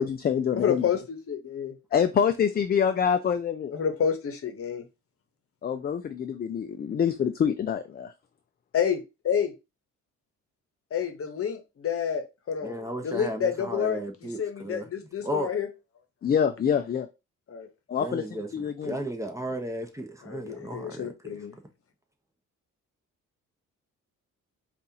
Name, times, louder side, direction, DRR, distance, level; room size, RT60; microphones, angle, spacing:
voice 1, 0.0-0.8 1.9-3.7 5.6-8.1 16.2-17.1 17.9-18.2 18.5-19.0, left 7 dB, 30° left, 0.4 m, -26 dB
voice 2, 0.5-1.7 3.7-4.8 8.7-9.5 10.9-12.8 13.0-14.0 14.4-15.7 17.5-17.7 20.2-21.5, left 8 dB, 50° left, 0.9 m, -29 dB
voice 3, 12.6-14.9 15.2-15.5 18.0-21.1, equal, 10° right, 0.8 m, -34 dB
5.3 x 2.5 x 2.8 m
cardioid pair, 90°, 30 cm